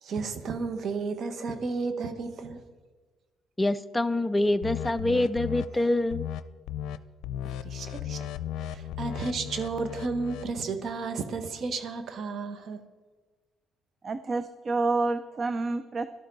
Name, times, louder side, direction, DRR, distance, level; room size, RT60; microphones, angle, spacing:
voice 1, 0.0-2.6 5.7-5.9 7.6-8.3 8.6-12.8, right 4 dB, 55° right, 8 dB, 1.4 m, -33 dB
voice 2, 3.6-6.2, left 1 dB, 15° left, 14 dB, 0.5 m, -25 dB
sound 1, 4.6-5.7 6.1-6.4 6.7-7.0 7.2-10.5, left 11 dB, 80° left, 0.5 m, -35 dB
voice 3, 14.0-16.1, right 3 dB, 40° right, 11 dB, 0.6 m, -28 dB
17.5 x 12.0 x 4.0 m, 1.4 s
cardioid pair, 85°, 0 cm